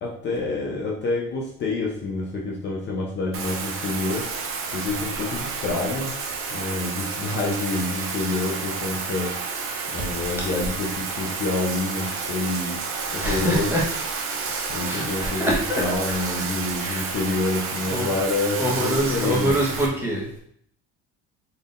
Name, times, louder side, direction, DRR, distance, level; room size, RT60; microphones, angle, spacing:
voice 1, 0.0-6.1 6.5-9.3 9.9-12.8 13.1-13.7 14.7-19.5, left 3 dB, 35° left, -2 dB, 0.7 m, -27 dB
Bathtub (filling or washing), 3.3-19.9, right 5 dB, 45° right, 0.7 m, -30 dB
voice 2, 13.1-13.8 14.9-15.6 16.8-17.1 17.9-18.1 18.6-20.4, equal, 5° right, -5 dB, 1.2 m, -25 dB
4.1 x 3.5 x 2.6 m, 0.66 s
cardioid pair, 135°, 31 cm